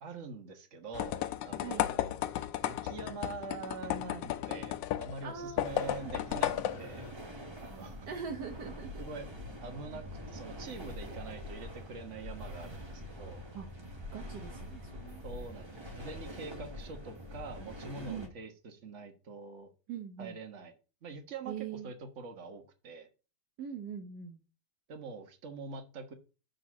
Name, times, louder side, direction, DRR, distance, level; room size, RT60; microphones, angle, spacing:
voice 1, 0.0-2.2 2.6-7.1 7.6-8.1 9.0-9.3 9.6-13.4 15.2-19.7 20.2-20.7 21.0-21.5 21.8-23.1 24.9-26.1, right 4 dB, 45° right, 5 dB, 1.4 m, -45 dB
sound 1, 0.9-7.1, left 13 dB, 90° left, 1.3 m, -34 dB
voice 2, 5.2-6.1 8.1-9.0 13.5-13.7 14.1-15.3 18.1-18.3 19.9-20.4 21.5-21.9 23.6-24.4, right 7 dB, 70° right, 4 dB, 1.4 m, -42 dB
sound 2, 5.6-18.3, equal, 20° right, 0.8 m, -45 dB
6.6 x 3.9 x 6.1 m, 0.33 s
omnidirectional pair, 2.0 m